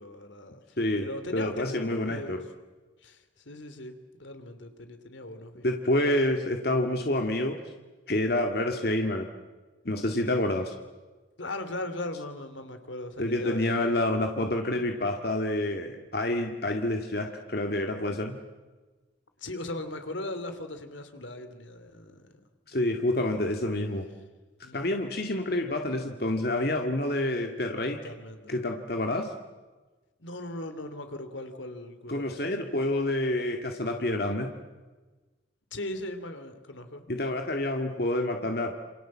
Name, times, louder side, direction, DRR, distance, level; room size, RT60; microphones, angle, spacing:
voice 1, 0.0-2.5 3.0-6.3 11.4-14.2 19.4-22.3 22.8-23.3 24.6-25.1 27.9-28.6 30.2-32.7 35.7-37.0, left 1 dB, 75° left, 9 dB, 2.9 m, -39 dB
voice 2, 0.8-1.1 1.3-2.4 5.6-7.6 8.1-9.3 9.9-10.7 13.2-18.4 22.7-24.0 24.7-28.0 28.5-29.3 32.1-34.5 37.1-38.7, left 1 dB, 50° left, 4 dB, 2.1 m, -28 dB
28.0 x 27.5 x 7.5 m, 1.2 s
head